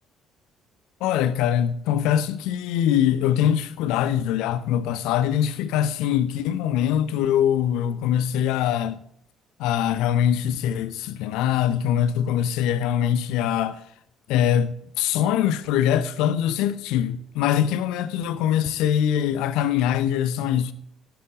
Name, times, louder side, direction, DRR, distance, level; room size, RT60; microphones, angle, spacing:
voice 1, 1.0-9.0 9.6-13.8 14.3-20.7, left 10 dB, 60° left, 0.7 m, -23 dB
12.5 x 12.0 x 3.6 m
figure-of-eight pair, 50°, 0 cm